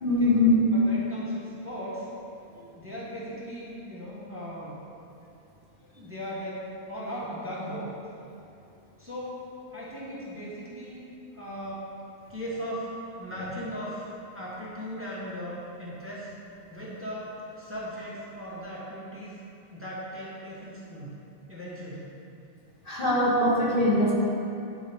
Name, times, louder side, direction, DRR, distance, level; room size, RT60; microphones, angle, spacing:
voice 1, 0.0-0.6 22.9-24.1, left 1 dB, 50° left, -5 dB, 1.4 m, -22 dB
voice 2, 0.7-2.1 2.7-4.8 6.0-7.9 9.0-11.0 11.3-11.9 12.3-14.1 14.3-16.3 16.7-19.4 19.7-21.1 21.5-22.2, equal, 10° right, -8 dB, 1.2 m, -38 dB
11.0 x 4.6 x 3.5 m, 2.8 s
omnidirectional pair, 1.2 m